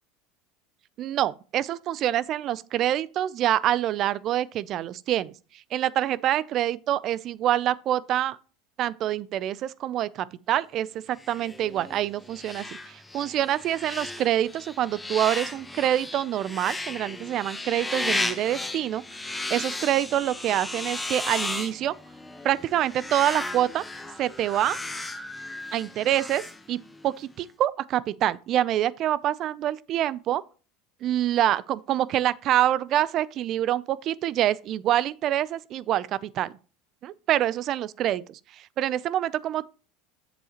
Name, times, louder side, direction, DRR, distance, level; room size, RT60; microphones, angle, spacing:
voice 1, 1.0-5.3 5.7-8.4 8.8-19.0 19.5-21.9 22.4-23.8 24.2-24.8 25.7-26.4 26.7-26.8 27.0-30.4 31.0-36.5 37.0-38.4 38.8-39.6, right 12 dB, 50° right, 0.5 m, -26 dB
sound 1, 11.2-27.1, left 2 dB, 10° left, 1.1 m, -35 dB
7.9 x 7.8 x 3.0 m
supercardioid pair, 100°, 0 cm